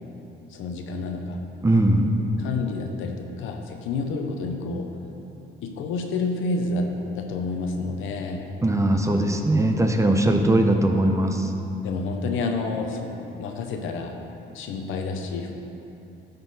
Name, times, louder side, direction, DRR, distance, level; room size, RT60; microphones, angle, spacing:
voice 1, 0.5-1.4 2.4-4.9 5.6-8.5 11.8-13.1 13.4-14.2 14.5-15.5, left 3 dB, 85° left, 4 dB, 0.7 m, -29 dB
voice 2, 1.6-2.2 8.6-11.5, right 1 dB, 15° right, 4 dB, 0.6 m, -20 dB
12.0 x 4.0 x 4.1 m, 2.8 s
cardioid pair, 90°, 20 cm